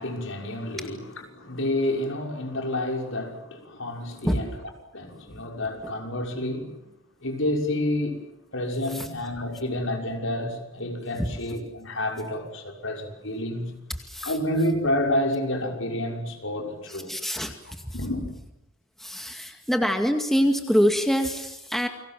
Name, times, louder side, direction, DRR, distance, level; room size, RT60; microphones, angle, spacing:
voice 1, 0.0-4.5 4.9-6.8 7.2-8.2 8.5-13.7 14.2-17.1 17.9-18.3, left 1 dB, 70° left, 6.2 m, -29 dB
voice 2, 14.0-14.3 16.9-18.0 19.0-21.9, equal, ahead, 2.1 m, -25 dB
29.5 x 24.5 x 7.7 m
head